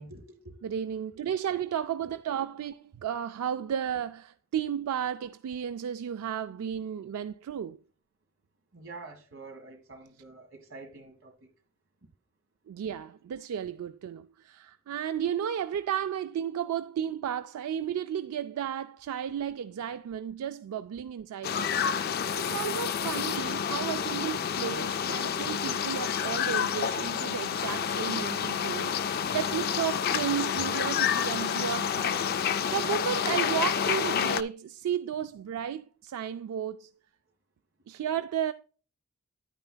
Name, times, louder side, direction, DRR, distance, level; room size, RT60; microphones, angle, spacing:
voice 1, 0.0-0.6 8.7-11.5 25.4-25.5 29.2-29.4 31.9-32.0, right 3 dB, 60° right, 1.6 m, -47 dB
voice 2, 0.6-7.8 12.7-21.8 22.4-32.2 32.7-36.9 37.9-38.5, right 9 dB, 85° right, 0.3 m, -33 dB
sound 1, 21.4-34.4, left 8 dB, 45° left, 0.3 m, -29 dB
9.8 x 8.9 x 2.2 m
head